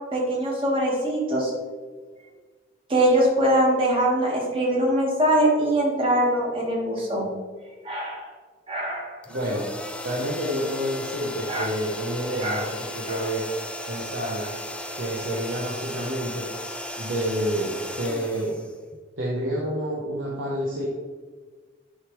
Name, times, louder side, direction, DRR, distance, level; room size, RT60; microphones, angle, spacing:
voice 1, 0.1-1.5 2.9-7.3 7.8-8.3 8.7-9.2 11.5-11.6 12.4-12.6 13.1-13.3, right 1 dB, 30° right, -3 dB, 1.6 m, -22 dB
sound 1, 9.2-19.2, left 1 dB, 5° left, 0.3 m, -36 dB
voice 2, 9.3-9.7 10.0-13.4 13.9-14.5 15.0-16.4 17.0-18.5 19.2-20.9, equal, 90° right, -5 dB, 1.0 m, -28 dB
9.4 x 3.2 x 3.1 m, 1.4 s
head